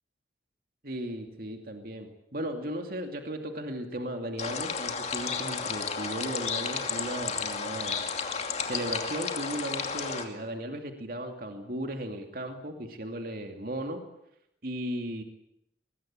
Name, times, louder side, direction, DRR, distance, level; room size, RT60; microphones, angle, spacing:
voice 1, 0.8-8.0 8.6-14.0 14.6-15.2, right 1 dB, 50° right, 5 dB, 2.6 m, -36 dB
sound 1, 4.4-10.3, left 5 dB, 35° left, 2.6 m, -32 dB
23.5 x 21.0 x 8.8 m, 0.79 s
head